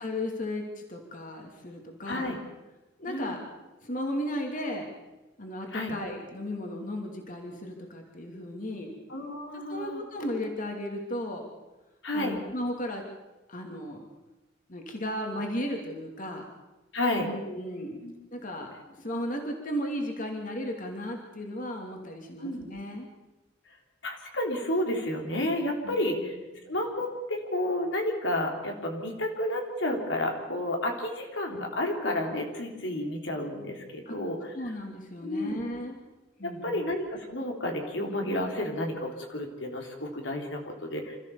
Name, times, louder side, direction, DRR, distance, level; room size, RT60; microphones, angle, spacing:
voice 1, 0.0-2.3 3.0-3.4 3.8-4.9 5.4-8.9 9.5-11.5 12.1-13.0 13.5-14.1 14.7-16.4 17.2-18.0 18.3-23.1 25.8-25.9 26.6-26.7 34.1-34.2 34.5-36.0 36.4-36.8, left 1 dB, 45° left, 2 dB, 2.8 m, -35 dB
voice 2, 2.1-2.4 3.1-3.4 5.7-6.0 9.1-10.0 12.0-12.4 16.9-17.3 18.0-18.1 22.4-22.6 24.0-26.4 26.7-34.7 35.2-35.7 36.4-41.2, left 1 dB, 80° left, 2 dB, 3.4 m, -31 dB
27.0 x 14.5 x 7.1 m, 1.1 s
head